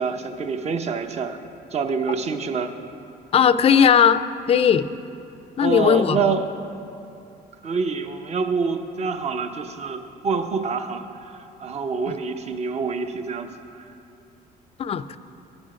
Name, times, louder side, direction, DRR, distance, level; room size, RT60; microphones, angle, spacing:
voice 1, 0.0-1.4 1.7-2.7 5.6-6.5 7.6-11.1 11.3-13.8, right 5 dB, 40° right, 7 dB, 0.8 m, -26 dB
voice 2, 3.3-4.2 4.5-4.9 5.6-6.2 12.1-12.2 14.8-15.2, left 8 dB, 35° left, 14 dB, 0.4 m, -17 dB
16.0 x 6.2 x 4.9 m, 2.7 s
cardioid pair, 110°, 17 cm